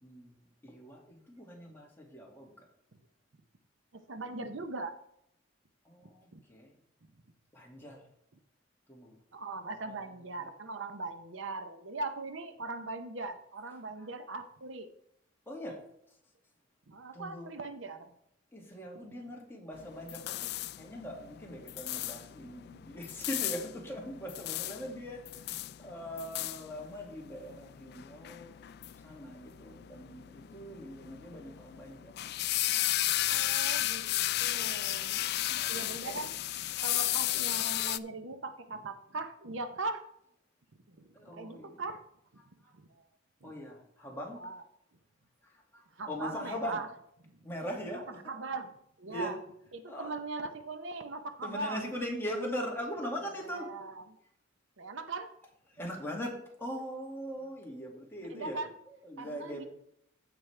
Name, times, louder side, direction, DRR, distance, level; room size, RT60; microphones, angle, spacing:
voice 1, 0.0-2.7 5.8-6.8 7.5-8.0 8.9-9.1 9.9-10.6 13.6-14.1 15.5-16.2 17.1-17.6 18.5-28.8 29.0-32.1 34.5-36.2 36.9-37.0 37.3-37.5 41.1-41.8 42.4-42.8 43.4-44.4 45.4-46.8 47.4-48.3 49.1-49.4 49.6-50.2 51.4-53.7 55.4-59.7, equal, 10° left, -2 dB, 2.0 m, -42 dB
voice 2, 3.9-4.9 6.3-6.4 9.3-14.9 16.9-18.1 33.3-35.2 35.7-36.3 36.8-40.0 40.9-41.1 41.4-42.0 42.8-42.9 43.4-43.5 44.4-44.6 46.0-46.9 48.3-48.7 49.0-49.3 49.7-51.8 53.6-54.0 54.8-55.3 58.3-58.7 59.2-59.6, right 3 dB, 70° right, 8 dB, 0.8 m, -40 dB
sound 1, 19.7-38.0, left 15 dB, 55° left, 0.3 m, -34 dB
15.0 x 5.3 x 3.3 m, 0.72 s
head